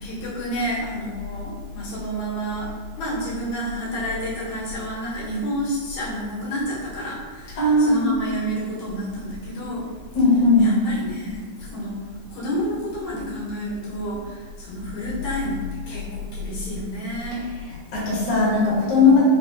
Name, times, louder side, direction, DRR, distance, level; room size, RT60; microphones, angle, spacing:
voice 1, 0.0-2.7 3.0-9.9 10.2-12.0 12.3-17.4 19.0-19.2, equal, 80° left, -8 dB, 2.6 m, -30 dB
voice 2, 7.6-8.1 10.1-10.7 17.9-19.2, left 3 dB, 60° left, -7 dB, 1.1 m, -17 dB
5.4 x 2.0 x 2.5 m, 1.5 s
omnidirectional pair, 3.3 m